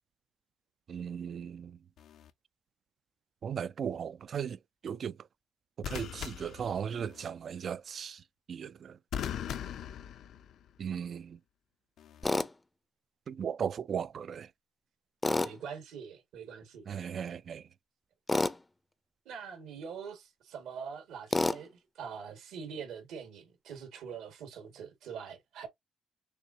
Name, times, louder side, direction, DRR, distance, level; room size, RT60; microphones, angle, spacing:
voice 1, 0.9-1.8 3.4-5.2 5.8-8.2 8.5-9.0 10.8-11.4 13.3-14.5 16.9-17.6, right 7 dB, 55° right, 0.3 m, -37 dB
sound 1, 2.0-2.3 5.8-7.3 9.1-10.8 12.0-12.3, left 9 dB, 75° left, 0.6 m, -40 dB
Tools, 12.2-12.5 15.2-15.6 18.3-18.6 21.3-21.6, left 2 dB, 15° left, 0.5 m, -28 dB
voice 2, 15.3-16.8 19.3-25.7, right 6 dB, 85° right, 2.0 m, -44 dB
6.6 x 2.9 x 2.8 m
cardioid pair, 90°, 0 cm